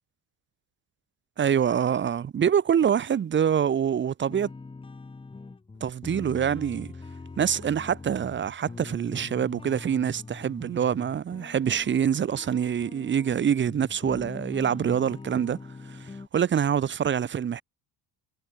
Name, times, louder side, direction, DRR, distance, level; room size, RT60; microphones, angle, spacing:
voice 1, 1.4-4.5 5.8-6.9 7.4-15.6 15.9-17.6, right 8 dB, 25° right, 2.1 m, -25 dB
sound 1, 4.3-16.3, left 3 dB, 10° left, 7.5 m, -43 dB
cardioid pair, 175°, 43 cm